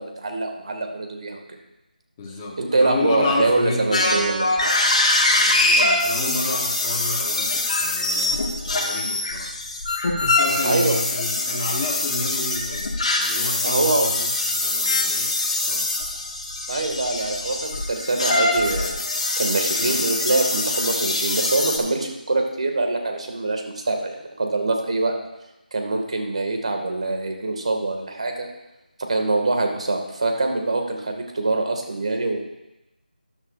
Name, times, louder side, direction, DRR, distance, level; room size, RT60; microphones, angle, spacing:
voice 1, 0.0-1.6 2.6-4.5 10.6-11.0 13.6-14.1 16.7-19.0 19.4-25.1 25.7-28.5 29.1-32.4, right 2 dB, 45° right, 3 dB, 1.9 m, -24 dB
voice 2, 2.2-4.0 5.3-9.5 10.2-12.9 13.2-15.3 15.6-15.8 19.8-20.1 29.6-29.8, left 2 dB, 15° left, -2 dB, 1.1 m, -30 dB
sound 1, 3.9-21.8, left 2 dB, 45° left, 1.7 m, -23 dB
13.5 x 11.0 x 2.5 m, 0.95 s
figure-of-eight pair, 175°, 5 cm